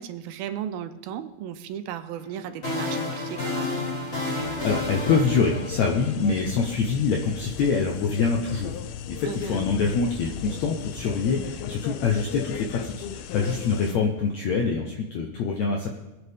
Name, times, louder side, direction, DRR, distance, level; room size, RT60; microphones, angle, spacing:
voice 1, 0.0-3.8 9.3-9.7, right 10 dB, 85° right, 9 dB, 2.5 m, -35 dB
sound 1, 2.2-6.4, left 2 dB, 20° left, 2.7 m, -31 dB
sound 2, 4.4-13.9, left 9 dB, 90° left, 2.6 m, -37 dB
voice 2, 4.6-8.8 9.1-16.0, left 5 dB, 70° left, 1 dB, 1.7 m, -25 dB
22.0 x 8.5 x 3.5 m, 1.1 s
omnidirectional pair, 4.3 m